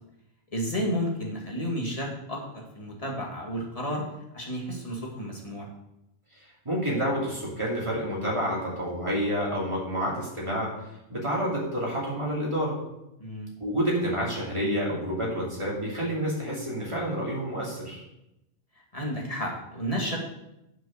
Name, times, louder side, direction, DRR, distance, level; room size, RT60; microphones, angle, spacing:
voice 1, 0.5-4.0 4.3-5.7 13.2-13.5 18.9-20.2, equal, 30° left, -2 dB, 2.1 m, -32 dB
voice 2, 6.6-10.7 11.1-12.8 13.6-18.0, equal, 25° right, -4 dB, 2.9 m, -29 dB
7.7 x 6.2 x 6.4 m, 0.88 s
omnidirectional pair, 1.1 m